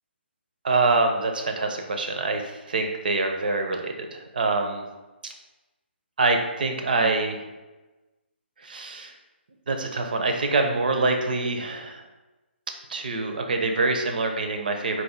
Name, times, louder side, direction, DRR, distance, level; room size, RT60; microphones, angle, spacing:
voice 1, 0.6-4.8 5.2-5.3 6.2-7.5 8.6-9.1 9.7-12.0 12.9-15.0, right 3 dB, 50° right, 4 dB, 0.5 m, -25 dB
4.2 x 2.5 x 3.6 m, 1.1 s
figure-of-eight pair, 140°, 6 cm